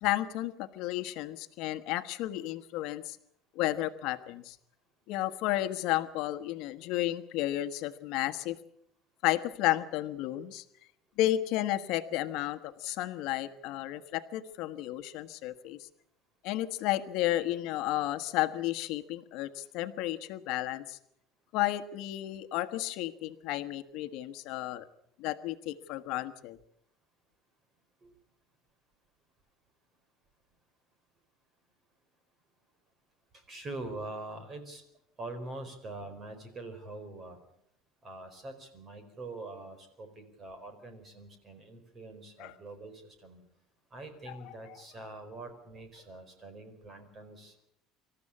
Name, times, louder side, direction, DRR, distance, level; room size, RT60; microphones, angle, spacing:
voice 1, 0.0-3.2 3.5-4.6 5.1-8.6 9.2-10.6 11.2-15.9 16.4-21.0 21.5-24.9 25.2-26.6 42.4-42.5, left 15 dB, 65° left, 9 dB, 1.3 m, -32 dB
voice 2, 33.3-34.8 35.2-37.4 38.0-43.4 43.9-47.7, right 2 dB, 25° right, 8 dB, 4.5 m, -44 dB
26.0 x 14.0 x 8.6 m, 0.75 s
cardioid pair, 155°, 0 cm